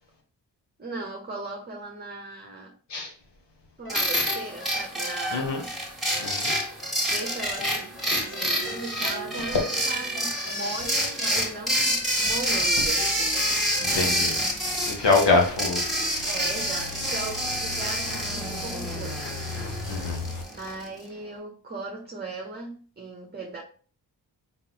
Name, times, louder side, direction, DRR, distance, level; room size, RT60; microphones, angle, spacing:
voice 1, 0.8-2.8 3.8-5.7 7.1-9.6 9.8-13.5 13.9-14.4 16.3-19.4 20.6-23.6, right 2 dB, 25° right, 0 dB, 0.9 m, -38 dB
sound 1, 3.8-14.0, left 2 dB, 30° left, 1.5 m, -42 dB
sound 2, 3.9-20.9, equal, ahead, 1.8 m, -28 dB
voice 2, 5.3-5.6 6.2-6.7 13.8-14.4 14.9-16.3 19.9-20.2, left 3 dB, 75° left, 1 dB, 1.5 m, -25 dB
sound 3, 8.2-20.4, left 3 dB, 50° left, 1.0 m, -41 dB
3.9 x 3.7 x 2.9 m, 0.41 s
cardioid pair, 50°, 42 cm